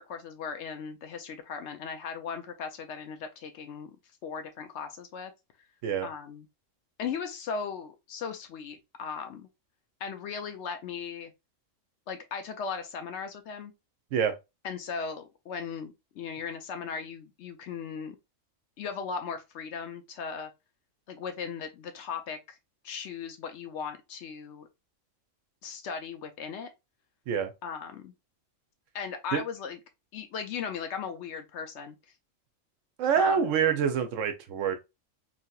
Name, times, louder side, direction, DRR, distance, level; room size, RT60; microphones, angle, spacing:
voice 1, 0.0-3.9 4.2-5.3 6.0-6.5 7.0-9.5 10.0-11.3 12.1-13.7 14.6-18.2 18.8-20.5 21.1-22.6 22.8-24.7 25.6-26.7 27.6-28.1 28.9-29.8 30.1-31.9 33.2-33.4, left 6 dB, 65° left, 0.8 m, -37 dB
voice 2, 33.0-34.8, right 7 dB, 75° right, 0.9 m, -26 dB
3.2 x 2.7 x 2.3 m
omnidirectional pair, 1.3 m